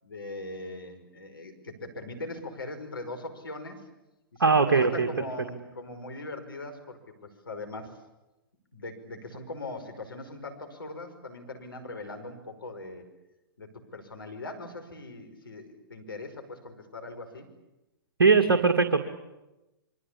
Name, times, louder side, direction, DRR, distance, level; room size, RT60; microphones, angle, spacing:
voice 1, 0.0-3.8 4.3-8.0 8.7-13.0 13.6-17.5, left 2 dB, 75° left, 6 dB, 5.5 m, -40 dB
voice 2, 4.4-5.1 18.2-19.0, right 4 dB, 70° right, 5 dB, 2.2 m, -20 dB
27.0 x 24.0 x 8.6 m, 0.99 s
figure-of-eight pair, 110°, 12 cm